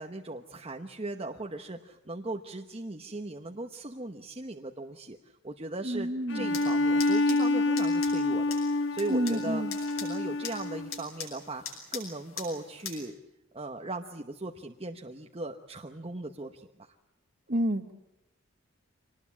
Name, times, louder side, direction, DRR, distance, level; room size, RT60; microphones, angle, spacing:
voice 1, 0.0-8.4 8.9-9.7 9.9-13.2 13.5-16.7, right 2 dB, 30° right, 3 dB, 1.1 m, -38 dB
voice 2, 5.8-6.6 9.1-9.7 17.5-17.9, equal, 45° right, 9 dB, 1.6 m, -29 dB
Bowed string instrument, 6.3-11.0, left 2 dB, 60° left, 1.4 m, -27 dB
sound 1, 6.5-13.0, left 6 dB, 85° left, 7.2 m, -43 dB
26.0 x 19.5 x 8.5 m, 0.94 s
head